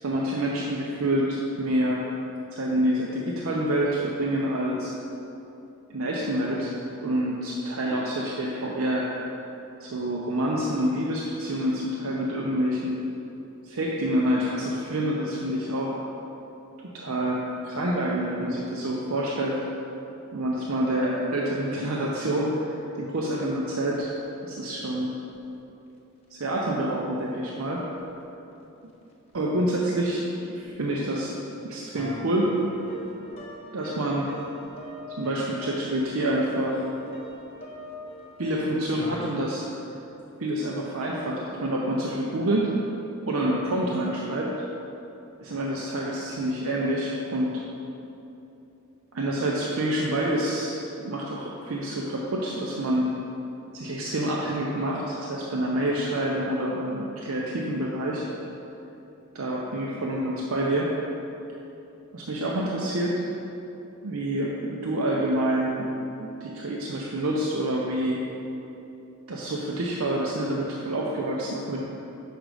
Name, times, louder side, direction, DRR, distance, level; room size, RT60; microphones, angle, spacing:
voice 1, 0.0-2.0 2.5-4.9 5.9-6.8 7.0-9.1 9.8-13.0 13.6-16.0 16.9-19.6 20.3-24.1 24.4-25.1 26.3-27.8 29.3-31.3 31.6-32.6 33.7-34.3 35.2-36.8 38.4-39.7 40.4-42.7 43.3-44.5 45.4-47.6 49.1-53.1 53.7-58.2 59.3-60.9 62.1-63.2 64.0-68.2 69.3-71.8, right 1 dB, 75° right, -3 dB, 0.6 m, -27 dB
sound 1, 25.3-25.4 26.6-26.7 28.0-28.1 29.3-29.4 30.6-30.7 31.9-39.3, equal, 30° left, 0.9 m, -42 dB
6.4 x 5.0 x 4.8 m, 2.9 s
head